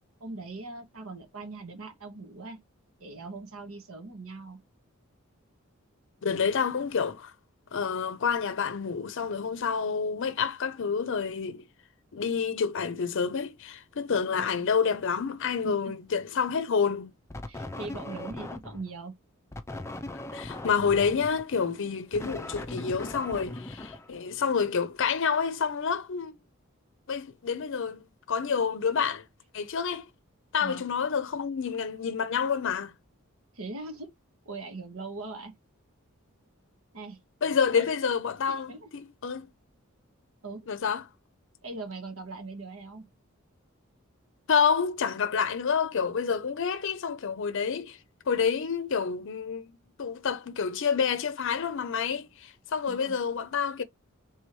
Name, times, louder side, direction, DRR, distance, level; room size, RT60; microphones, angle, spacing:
voice 1, 0.2-2.6 3.0-4.6 14.3-14.7 15.6-16.0 17.5-19.1 30.6-30.8 33.5-34.1 34.4-35.5 36.9-37.2 37.7-37.9 38.5-38.9 40.4-40.7 41.6-43.0 52.8-53.2, right 3 dB, 90° right, 1.4 m, -40 dB
voice 2, 6.2-7.3 7.7-11.6 12.1-17.1 20.3-26.4 27.1-29.2 29.5-30.1 30.5-32.9 37.4-39.5 40.7-41.0 44.5-48.0 48.3-53.8, left 6 dB, 65° left, 0.5 m, -28 dB
sound 1, 17.3-18.9 19.5-24.6, left 1 dB, 15° left, 0.5 m, -40 dB
3.4 x 3.0 x 4.5 m
head